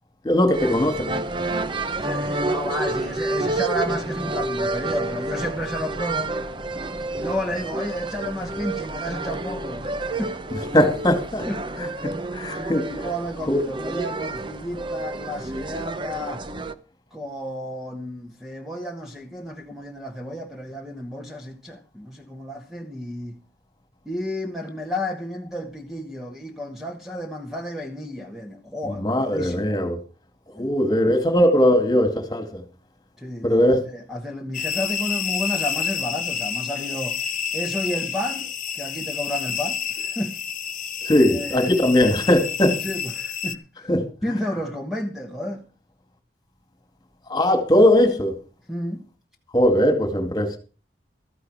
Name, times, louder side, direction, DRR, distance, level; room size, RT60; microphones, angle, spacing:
voice 1, 0.2-1.2 10.7-11.5 11.8-11.9 12.3-12.9 13.5-13.6 29.0-30.0 30.6-32.4 33.4-33.8 41.1-42.8 43.9-44.1 47.3-48.4 49.5-50.6, left 1 dB, 25° left, 2.2 m, -19 dB
sound 1, 0.5-16.7, right 2 dB, 30° right, 0.8 m, -29 dB
voice 2, 1.7-6.4 7.1-10.3 11.4-11.6 12.6-16.5 17.1-23.4 24.0-29.8 30.5-30.7 33.2-37.2 37.5-38.5 38.7-40.4 41.3-41.7 42.8-43.6 44.2-45.6 48.7-49.1, equal, ahead, 1.3 m, -31 dB
sound 2, 34.5-43.5, left 7 dB, 45° left, 0.8 m, -29 dB
13.5 x 10.0 x 4.9 m
head